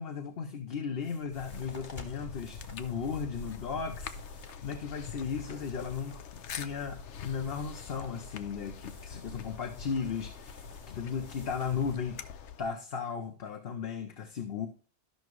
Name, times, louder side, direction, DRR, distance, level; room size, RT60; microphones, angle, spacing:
voice 1, 0.0-14.7, left 6 dB, 60° left, 1.0 m, -36 dB
sound 1, 1.0-11.9, left 2 dB, 45° left, 1.6 m, -55 dB
sound 2, 1.3-12.8, left 6 dB, 90° left, 1.0 m, -44 dB
13.0 x 6.0 x 3.0 m
omnidirectional pair, 1.2 m